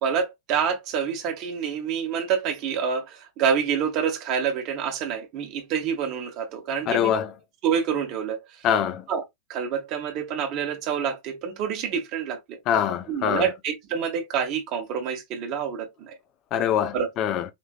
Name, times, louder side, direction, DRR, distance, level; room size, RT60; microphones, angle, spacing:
voice 1, 0.0-7.1 7.6-8.4 9.1-9.2 9.5-12.6 13.1-16.1 16.9-17.1, right 7 dB, 40° right, 1.4 m, -27 dB
voice 2, 6.9-7.3 8.6-9.0 12.7-13.5 16.5-17.4, left 9 dB, 35° left, 0.6 m, -24 dB
5.2 x 3.2 x 2.5 m
figure-of-eight pair, 90°, 0 cm